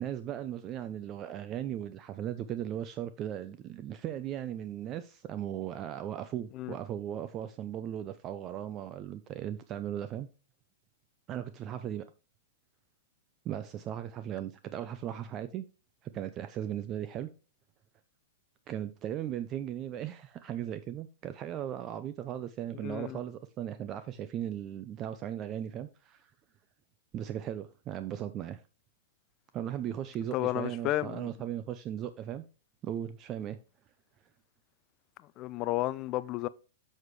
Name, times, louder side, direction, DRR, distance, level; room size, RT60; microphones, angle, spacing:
voice 1, 0.0-10.3 11.3-12.0 13.4-15.6 16.0-17.3 18.7-26.3 27.1-28.6 29.5-32.4 32.8-33.6, right 10 dB, 30° right, 0.5 m, -37 dB
voice 2, 22.8-23.2 30.3-31.3 35.4-36.5, left 16 dB, 35° left, 0.4 m, -32 dB
7.3 x 6.4 x 3.1 m
hypercardioid pair, 135°, 0 cm